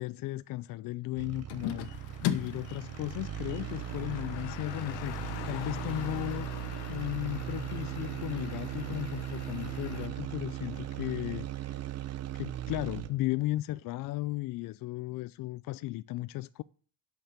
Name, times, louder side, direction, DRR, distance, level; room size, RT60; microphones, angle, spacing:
voice 1, 0.0-6.5 6.9-11.7 12.3-16.6, left 17 dB, 50° left, 0.4 m, -35 dB
sound 1, 1.2-13.3, right 13 dB, 35° right, 0.8 m, -38 dB
sound 2, 1.5-10.1, left 11 dB, 70° left, 1.4 m, -42 dB
Car, 1.6-11.1, left 14 dB, 85° left, 1.1 m, -47 dB
10.0 x 6.6 x 8.2 m
cardioid pair, 135°, 43 cm